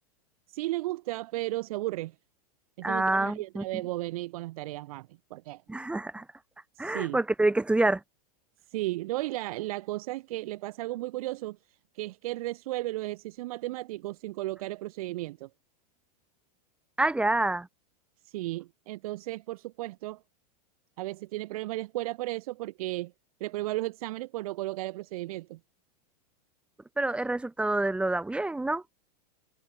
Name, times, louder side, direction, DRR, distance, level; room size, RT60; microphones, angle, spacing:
voice 1, 0.5-2.1 2.8-5.6 6.7-7.2 8.7-15.5 18.2-20.2 21.0-23.1 23.4-25.6, right 18 dB, 60° right, 1.6 m, -34 dB
voice 2, 2.8-3.6 5.7-6.2 6.8-8.0 17.0-17.7 27.0-28.8, right 2 dB, 5° right, 0.7 m, -27 dB
hypercardioid pair, 135°, 20 cm